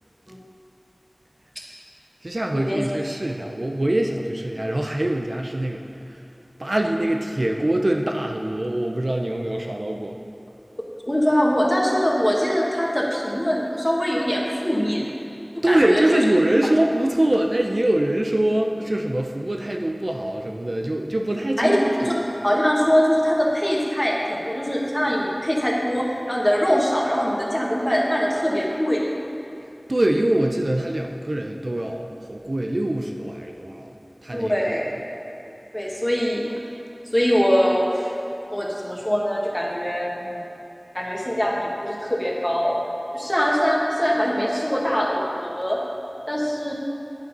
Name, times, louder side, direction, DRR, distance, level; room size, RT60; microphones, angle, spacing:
voice 1, 2.2-5.8 6.6-10.2 15.6-21.9 29.9-33.9 34.2-34.8, right 1 dB, 60° right, 2 dB, 0.6 m, -23 dB
voice 2, 11.0-15.0 15.6-16.2 21.6-22.1 22.4-29.1 34.3-34.9 35.7-36.4 37.1-38.1 38.5-40.4 40.9-42.8 43.1-45.8 46.3-46.7, equal, 20° left, -3 dB, 1.7 m, -22 dB
10.0 x 6.6 x 5.5 m, 2.9 s
wide cardioid pair, 45°, 0 cm